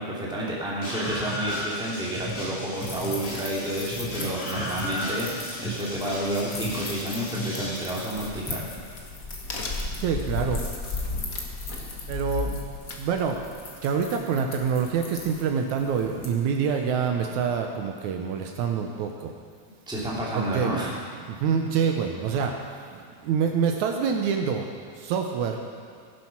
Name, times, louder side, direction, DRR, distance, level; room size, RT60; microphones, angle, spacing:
voice 1, 0.0-8.7 19.9-20.9, right 1 dB, ahead, -6 dB, 1.9 m, -30 dB
Screaming, 0.8-7.8, equal, 90° left, 4.9 m, -34 dB
sound 1, 2.7-16.3, left 3 dB, 45° left, 1.2 m, -41 dB
Crack, 8.1-13.6, left 3 dB, 70° left, 0.8 m, -33 dB
voice 2, 10.0-10.6 11.2-11.3 12.1-13.6 13.8-19.3 20.4-20.8 21.3-22.6 22.9-24.7 25.0-25.6, right 6 dB, 75° right, 3 dB, 2.1 m, -26 dB
16.5 x 7.6 x 5.8 m, 2.2 s
omnidirectional pair, 3.6 m